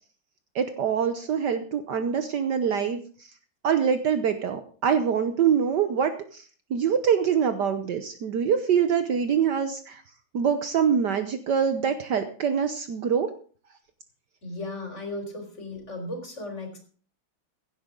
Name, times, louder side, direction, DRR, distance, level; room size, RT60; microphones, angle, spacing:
voice 1, 0.5-3.0 3.6-6.4 6.7-9.9 10.3-13.3, right 7 dB, 65° right, 8 dB, 1.4 m, -24 dB
voice 2, 14.4-16.8, left 2 dB, 35° left, 3 dB, 4.3 m, -36 dB
16.5 x 11.5 x 3.8 m, 0.42 s
omnidirectional pair, 2.2 m